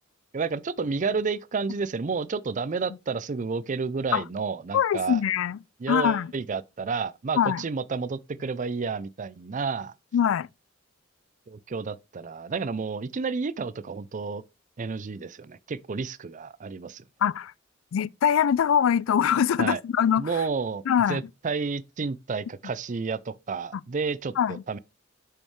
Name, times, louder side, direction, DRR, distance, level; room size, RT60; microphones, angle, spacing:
voice 1, 0.3-5.2 5.8-9.9 11.5-14.4 14.8-17.0 19.6-19.8 20.2-20.8 21.1-24.8, right 4 dB, 40° right, 0.5 m, -31 dB
voice 2, 4.7-5.6 5.9-6.3 7.4-7.6 10.1-10.5 17.2-17.5 17.9-20.3 20.9-21.2 24.4-24.6, left 8 dB, 90° left, 0.4 m, -23 dB
6.6 x 6.4 x 3.1 m
head